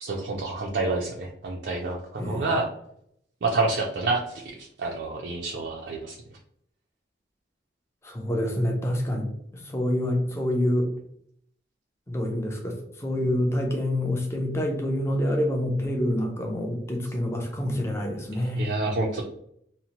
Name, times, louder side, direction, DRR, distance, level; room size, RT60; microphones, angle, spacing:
voice 1, 0.0-2.7 3.4-6.2 18.4-19.2, right 3 dB, 70° right, -1 dB, 0.4 m, -28 dB
voice 2, 8.0-9.3 9.7-10.9 12.1-18.7, left 1 dB, 15° left, 1 dB, 0.5 m, -27 dB
2.8 x 2.0 x 2.8 m, 0.69 s
head